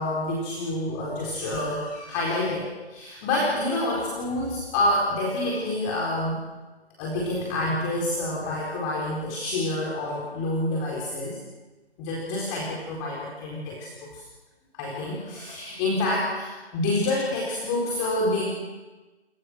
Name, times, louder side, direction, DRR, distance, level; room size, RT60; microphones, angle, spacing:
voice 1, 0.0-6.4 7.0-11.4 12.0-14.2 14.7-18.4, left 1 dB, 15° left, -4 dB, 4.4 m, -28 dB
27.5 x 26.0 x 6.3 m, 1.2 s
figure-of-eight pair, 160°, 32 cm